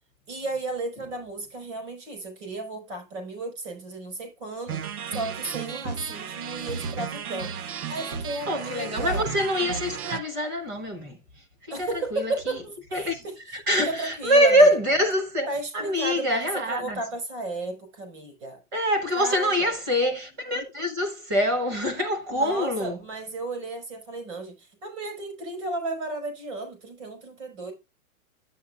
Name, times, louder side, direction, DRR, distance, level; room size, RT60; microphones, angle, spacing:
voice 1, 0.3-4.8 5.1-7.5 7.9-9.3 11.7-13.3 13.8-14.7 15.5-16.3 16.7-18.6 19.2-19.7 22.3-27.7, right 2 dB, 50° right, 5.4 m, -34 dB
sound 1, 4.7-10.2, right 6 dB, 75° right, 1.1 m, -34 dB
voice 2, 8.5-11.2 11.7-12.6 12.9-15.5 15.7-17.0 18.7-23.0, equal, 15° right, 0.6 m, -24 dB
10.0 x 8.8 x 2.3 m
hypercardioid pair, 175°, 45 cm